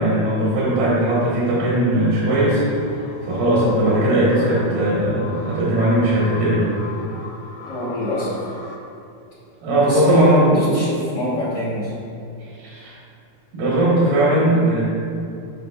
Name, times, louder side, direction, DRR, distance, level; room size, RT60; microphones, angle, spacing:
voice 1, 0.0-2.6 3.2-6.7 9.6-10.6 12.6-13.0 13.5-14.8, right 1 dB, 90° right, -8 dB, 3.2 m, -18 dB
sound 1, 1.9-8.8, left 2 dB, 80° left, 1.6 m, -37 dB
voice 2, 7.7-8.4 9.8-11.9, left 1 dB, 55° left, -10 dB, 1.1 m, -24 dB
9.3 x 6.1 x 2.4 m, 2.6 s
omnidirectional pair, 4.0 m